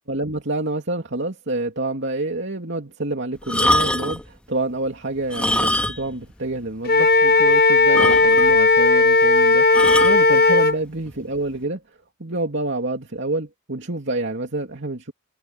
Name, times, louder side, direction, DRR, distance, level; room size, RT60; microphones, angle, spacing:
voice 1, 0.1-11.8 12.2-15.1, right 2 dB, 55° right, 2.9 m, -28 dB
sound 1, 3.4-4.3 5.2-6.2 6.5-6.6 7.1-7.2 7.5-7.6 7.9-8.6 9.7-10.2 11.1-11.3, left 1 dB, 5° left, 1.8 m, -23 dB
Wind instrument woodwind instrument, 6.9-10.8, left 3 dB, 45° left, 0.9 m, -15 dB
open air
head